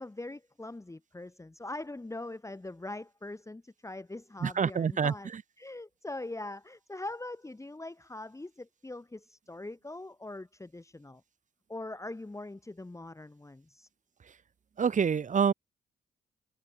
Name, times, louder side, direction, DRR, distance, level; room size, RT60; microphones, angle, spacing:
voice 1, 0.0-5.3 5.6-11.2 11.7-13.9, left 2 dB, 15° left, 2.3 m, -42 dB
voice 2, 4.4-5.4 14.8-15.5, right 6 dB, 45° right, 1.4 m, -27 dB
supercardioid pair, 50°, 18 cm